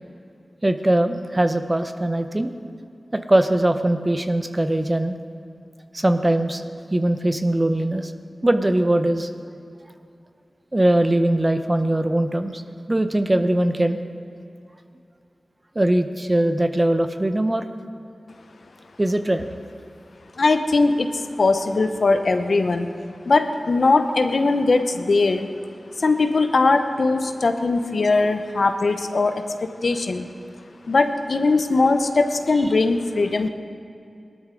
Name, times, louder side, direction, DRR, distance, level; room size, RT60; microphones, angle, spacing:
voice 1, 0.6-2.5 3.1-5.1 5.9-6.6 6.9-8.1 8.4-9.3 10.7-12.6 12.9-14.0 15.7-17.6 19.0-19.4, right 1 dB, 30° right, 8 dB, 0.9 m, -21 dB
voice 2, 20.4-22.9 23.3-25.5 26.0-30.3 30.9-33.5, left 3 dB, 75° left, 7 dB, 0.8 m, -20 dB
19.0 x 12.5 x 3.9 m, 2.5 s
cardioid pair, 40°, 0 cm